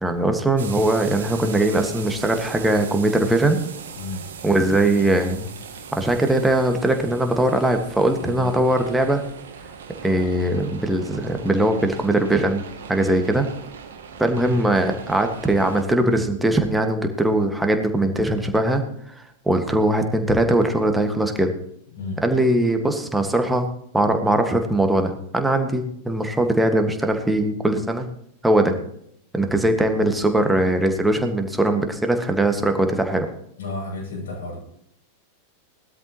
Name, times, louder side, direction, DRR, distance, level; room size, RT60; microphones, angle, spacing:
voice 1, 0.0-3.6 4.4-5.5 5.9-9.2 10.0-12.6 12.9-13.5 14.2-18.8 19.1-19.2 19.5-21.5 22.2-28.1 28.4-28.7 29.3-33.3, right 1 dB, 5° right, 6 dB, 1.7 m, -20 dB
sound 1, 0.6-15.8, right 6 dB, 60° right, 1.8 m, -39 dB
voice 2, 3.9-4.3 8.2-8.5 21.9-22.3 33.6-34.6, left 3 dB, 65° left, -2 dB, 7.4 m, -32 dB
19.5 x 13.0 x 3.1 m, 0.71 s
figure-of-eight pair, 90°, 0 cm